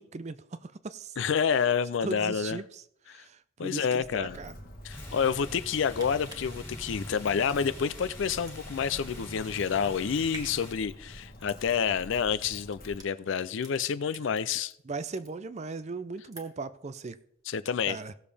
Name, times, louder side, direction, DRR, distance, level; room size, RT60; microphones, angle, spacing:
voice 1, 0.0-1.1 2.0-2.8 3.1-4.5 14.9-17.2 17.9-18.1, right 3 dB, 35° right, 0.4 m, -38 dB
voice 2, 1.2-2.6 3.1-3.2 3.6-4.4 4.8-14.7 17.5-18.0, left 7 dB, 65° left, 0.4 m, -29 dB
Walk footsteps, 4.0-13.0, equal, 45° left, 1.5 m, -47 dB
sound 1, 4.9-10.7, left 1 dB, 10° left, 2.1 m, -45 dB
sound 2, 6.0-14.7 15.0-15.8 16.1-16.8 17.1-17.2, right 1 dB, 15° right, 1.6 m, -50 dB
17.0 x 7.0 x 3.4 m
head